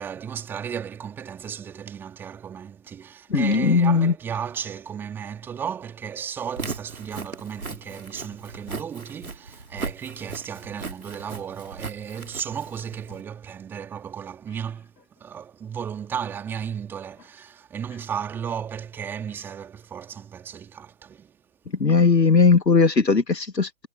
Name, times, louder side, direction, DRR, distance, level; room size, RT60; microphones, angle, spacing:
voice 1, 0.0-21.4, right 8 dB, 5° right, 3.2 m, -34 dB
voice 2, 3.3-4.1 21.8-23.9, left 4 dB, 80° left, 1.3 m, -18 dB
Walk footsteps, 6.4-13.2, right 4 dB, 60° right, 2.8 m, -37 dB
figure-of-eight pair, 155°, 49 cm